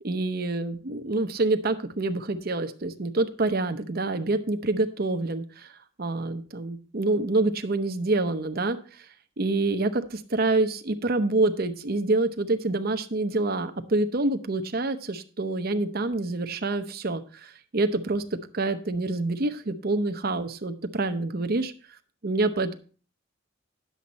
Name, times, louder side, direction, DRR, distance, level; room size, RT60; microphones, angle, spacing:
voice 1, 0.0-5.7 6.0-9.1 9.4-21.7 22.2-22.7, right 2 dB, 50° right, 8 dB, 0.8 m, -27 dB
10.5 x 7.3 x 4.1 m, 0.39 s
head